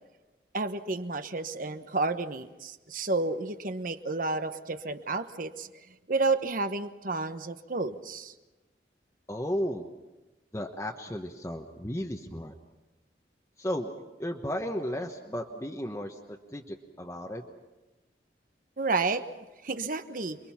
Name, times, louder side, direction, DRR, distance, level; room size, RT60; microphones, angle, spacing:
voice 1, 0.5-5.7 6.1-8.3 18.8-19.3 19.6-20.4, right 3 dB, 50° right, 10 dB, 1.1 m, -31 dB
voice 2, 9.3-9.9 10.5-12.5 13.6-13.9 14.2-17.4, equal, 15° left, 1 dB, 1.2 m, -34 dB
28.5 x 22.5 x 5.9 m, 1.1 s
head